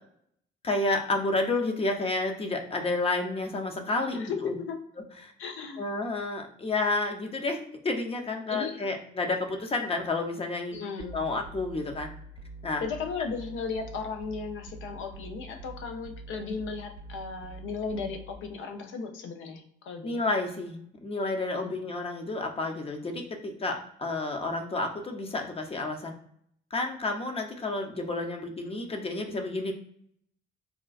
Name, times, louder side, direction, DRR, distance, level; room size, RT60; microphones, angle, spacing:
voice 1, 0.6-4.6 5.2-5.3 5.8-12.1 12.6-12.8 20.0-26.1 26.7-29.7, left 2 dB, 30° left, 4 dB, 0.6 m, -30 dB
voice 2, 4.1-4.8 5.4-5.8 8.5-8.9 10.7-11.2 12.8-20.2 21.5-22.0, left 5 dB, 80° left, 5 dB, 0.6 m, -36 dB
sound 1, 11.0-18.4, right 1 dB, 65° right, 0.6 m, -45 dB
3.6 x 2.2 x 2.4 m, 0.67 s
cardioid pair, 90°, 20 cm